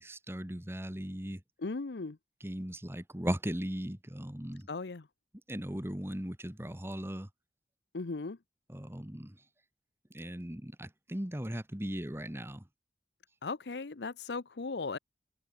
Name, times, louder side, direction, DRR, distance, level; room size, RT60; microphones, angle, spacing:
voice 1, 0.0-1.4 2.4-4.7 5.5-7.3 8.7-9.3 10.1-12.6, equal, 15° right, 1.6 m, -38 dB
voice 2, 1.6-2.2 4.7-5.1 7.9-8.4 13.4-15.0, left 3 dB, 80° left, 0.8 m, -37 dB
head